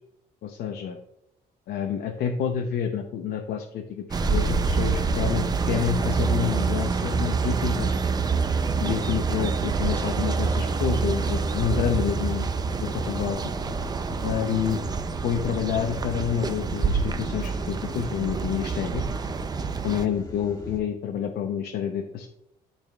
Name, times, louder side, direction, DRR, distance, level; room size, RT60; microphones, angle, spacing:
voice 1, 0.4-1.0 1.7-7.9 8.8-12.5 12.8-13.4 14.2-14.8 15.2-19.0 19.8-22.3, left 8 dB, 65° left, 3 dB, 0.8 m, -28 dB
sound 1, 4.1-20.1, right 5 dB, 25° right, 0.5 m, -27 dB
sound 2, 4.2-20.8, left 2 dB, 20° left, 1.5 m, -40 dB
12.0 x 4.2 x 2.4 m, 0.80 s
cardioid pair, 110°, 17 cm